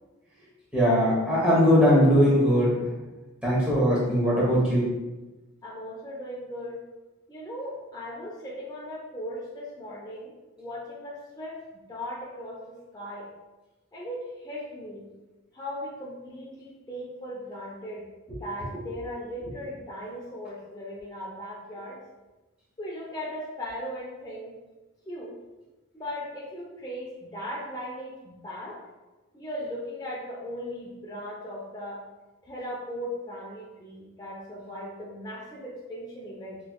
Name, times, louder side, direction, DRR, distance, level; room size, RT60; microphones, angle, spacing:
voice 1, 0.7-2.8 3.4-4.9 18.3-18.4, equal, 5° right, -8 dB, 1.0 m, -20 dB
voice 2, 5.6-6.8 7.3-10.3 10.6-11.6 11.9-12.6 12.9-13.3 13.9-15.1 15.5-18.1 18.4-22.0 22.8-24.5 25.1-25.3 25.9-28.8 29.3-32.0 32.5-36.6, equal, 15° left, -5 dB, 0.4 m, -38 dB
3.2 x 3.1 x 2.2 m, 1.1 s
head